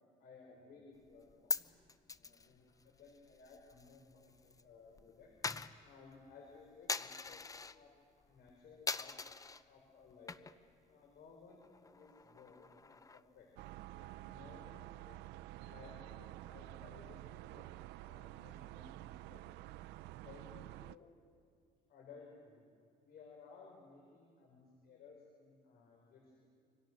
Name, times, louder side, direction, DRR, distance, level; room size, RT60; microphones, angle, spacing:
voice 1, 0.2-1.8 2.2-5.3 5.8-7.4 7.7-7.9 8.2-9.1 9.7-10.4 10.9-13.5 14.0-15.2 15.7-19.4 20.0-21.1 21.9-22.6 23.0-26.5, left 4 dB, 65° left, -1 dB, 5.2 m, -59 dB
Coin (dropping), 1.1-4.6 4.9-7.8 8.2-8.5 8.9-9.6 10.1-10.7 11.0-11.1 11.5-13.4, left 4 dB, 20° left, 0.7 m, -43 dB
sound 1, 13.6-21.0, right 16 dB, 90° right, 0.5 m, -50 dB
28.0 x 25.5 x 6.3 m, 2.3 s
cardioid pair, 110°, 17 cm